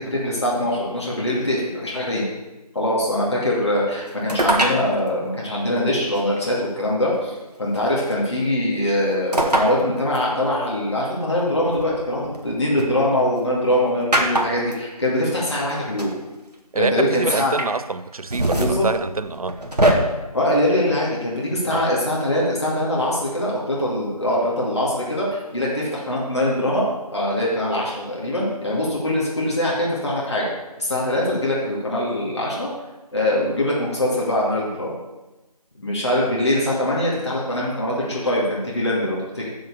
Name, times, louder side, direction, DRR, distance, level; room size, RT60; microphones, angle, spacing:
voice 1, 0.0-2.2 2.7-16.1 16.7-17.5 18.5-18.8 20.3-26.8 27.1-30.5 30.8-32.7 33.1-34.9 35.8-39.5, left 1 dB, 45° left, 2.4 m, -23 dB
sound 1, 4.3-4.8 6.1-6.2 7.7-8.1 9.3-9.7 10.2-10.3 11.7-12.8 14.1-14.7 15.7-15.8 16.0-16.1 17.1-17.7 18.1-19.9, right 1 dB, 90° right, 1.8 m, -22 dB
voice 2, 16.7-19.6 21.7-21.9, right 3 dB, 65° right, 0.5 m, -26 dB
7.0 x 6.4 x 6.9 m
figure-of-eight pair, 175°, 20 cm